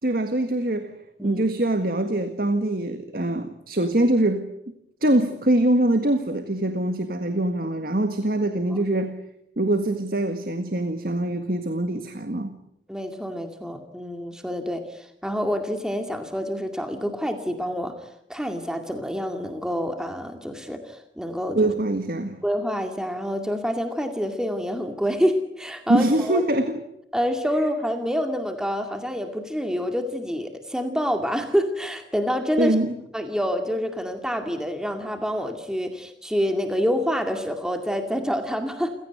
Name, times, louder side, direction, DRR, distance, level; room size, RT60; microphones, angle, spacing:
voice 1, 0.0-0.9 1.2-4.5 5.0-9.2 9.6-12.5 21.6-22.4 25.9-26.8 32.6-33.0, right 1 dB, 50° right, 1.7 m, -23 dB
voice 2, 12.9-21.7 22.4-26.6 27.1-32.8 33.1-38.9, equal, 5° right, 2.2 m, -27 dB
29.5 x 16.5 x 9.2 m
head